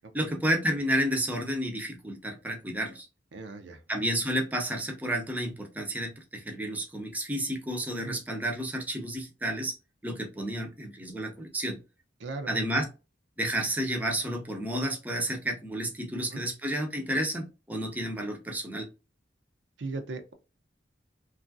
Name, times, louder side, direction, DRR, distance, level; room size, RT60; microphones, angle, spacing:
voice 1, 0.1-3.1 3.9-9.7 10.0-11.8 12.5-12.9 13.4-18.9, right 1 dB, 10° right, 0.5 m, -31 dB
voice 2, 3.3-3.8 7.9-8.2 12.2-12.6 16.1-16.5 19.8-20.3, right 3 dB, 75° right, 0.5 m, -38 dB
3.0 x 2.4 x 2.5 m
head